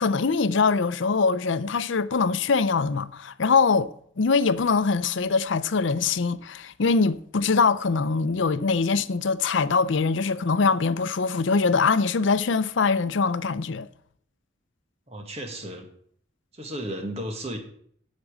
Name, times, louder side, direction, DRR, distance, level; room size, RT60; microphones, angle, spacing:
voice 1, 0.0-3.9 4.2-13.9, left 4 dB, 70° left, 0.6 m, -23 dB
voice 2, 15.1-15.9 16.5-17.6, right 1 dB, 30° right, 1.8 m, -34 dB
8.3 x 7.4 x 8.5 m
head